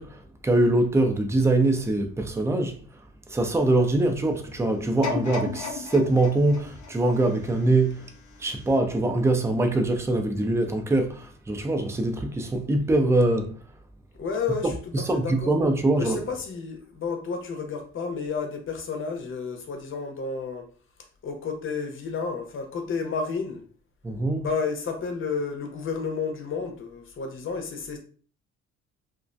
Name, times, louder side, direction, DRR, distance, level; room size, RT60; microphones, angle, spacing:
voice 1, 0.0-2.8 3.3-8.1 8.4-13.6 14.9-16.2 24.0-24.5, right 2 dB, 10° right, 0.4 m, -23 dB
sound 1, 5.0-8.1 8.6-8.7, left 5 dB, 75° left, 0.7 m, -34 dB
voice 2, 14.2-14.7 15.1-15.5 16.0-20.7 21.2-23.7 24.4-28.0, left 5 dB, 45° left, 0.7 m, -31 dB
2.4 x 2.1 x 2.5 m
cardioid pair, 90°, 30 cm